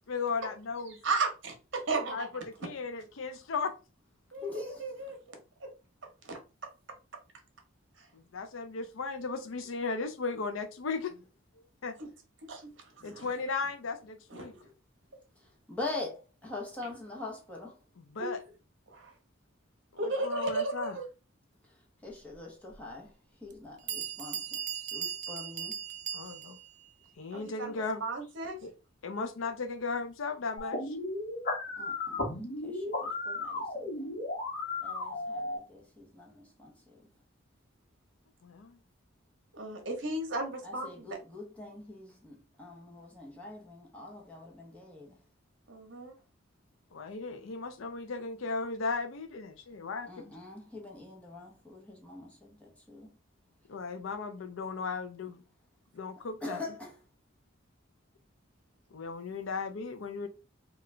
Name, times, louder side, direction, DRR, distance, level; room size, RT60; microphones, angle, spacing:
voice 1, 0.1-1.0 2.1-3.7 8.1-11.2 11.8-12.0 13.0-14.5 18.1-18.4 20.0-21.0 26.1-26.6 27.2-28.0 28.6-28.7 29.0-31.0 38.4-38.8 46.9-50.4 53.7-55.4 55.9-56.6 58.9-60.3, left 4 dB, 70° left, 0.5 m, -36 dB
voice 2, 1.0-2.3 4.3-5.2 5.6-5.7 6.2-6.4 12.0-12.1 12.5-12.7 13.0-13.3 14.3-14.6 18.2-18.3 18.9-19.1 20.0-21.1 27.3-27.7 28.0-28.6 39.5-41.1 45.7-46.1, right 3 dB, 60° right, 1.0 m, -34 dB
voice 3, 4.4-4.9 15.4-17.8 22.0-23.1 23.4-25.8 31.8-32.4 32.6-34.2 34.8-37.1 40.6-45.2 50.0-53.1 56.4-56.9, left 2 dB, 5° left, 0.9 m, -43 dB
Bell, 22.7-22.8 23.5-23.6 23.9-26.7, right 9 dB, 35° right, 0.3 m, -38 dB
sound 1, 30.6-35.6, left 2 dB, 45° left, 1.0 m, -35 dB
3.7 x 2.3 x 3.2 m
head